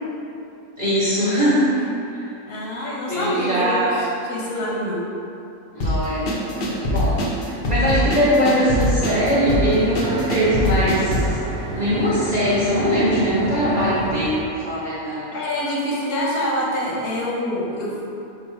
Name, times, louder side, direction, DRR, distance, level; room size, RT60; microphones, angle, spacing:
voice 1, 0.8-1.8 2.1-2.2 3.1-4.0 5.7-6.3 6.6-7.2 7.4-11.4 11.7-15.3, equal, 45° right, -10 dB, 0.5 m, -21 dB
voice 2, 2.5-5.0 15.3-18.0, left 1 dB, 90° left, -5 dB, 1.4 m, -26 dB
sound 1, 5.8-11.3, left 1 dB, 60° left, 0.6 m, -22 dB
sound 2, 8.9-14.4, right 3 dB, 70° right, 0.8 m, -31 dB
3.7 x 2.2 x 4.3 m, 2.7 s
omnidirectional pair, 1.5 m